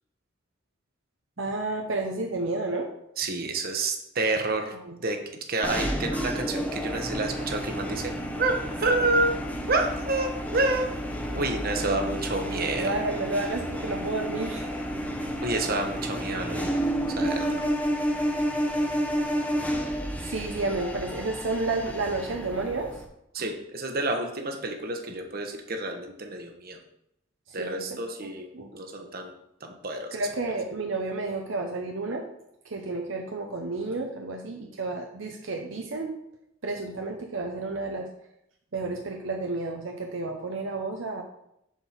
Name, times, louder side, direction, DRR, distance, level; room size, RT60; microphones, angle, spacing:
voice 1, 1.4-2.9 4.8-5.0 12.7-14.9 20.2-22.9 27.5-28.0 28.5-28.7 30.1-32.2 32.6-36.2 36.6-38.1 38.7-41.2, right 2 dB, 70° right, 3 dB, 0.8 m, -31 dB
voice 2, 3.2-4.7 5.0-5.2 5.5-8.1 8.4-9.3 9.7-10.9 11.3-12.9 15.4-16.7 17.1-17.5 23.3-26.8 27.5-29.3 29.6-30.2, right 2 dB, 45° right, 4 dB, 1.1 m, -29 dB
sound 1, 5.6-23.0, equal, 5° left, 0.7 m, -31 dB
7.0 x 4.6 x 5.7 m, 0.78 s
head